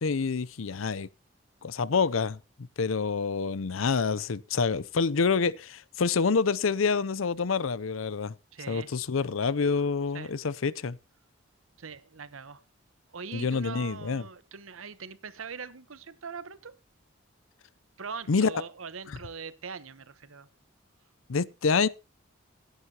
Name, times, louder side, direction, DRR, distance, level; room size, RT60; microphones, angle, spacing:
voice 1, 0.0-1.1 1.6-8.4 8.7-11.0 13.3-14.3 18.3-18.5 19.1-19.2 21.3-21.9, left 5 dB, 80° left, 0.6 m, -27 dB
voice 2, 8.5-8.9 10.1-10.3 11.8-12.6 13.1-16.7 18.0-20.5, right 5 dB, 85° right, 1.0 m, -42 dB
18.0 x 10.5 x 2.9 m
head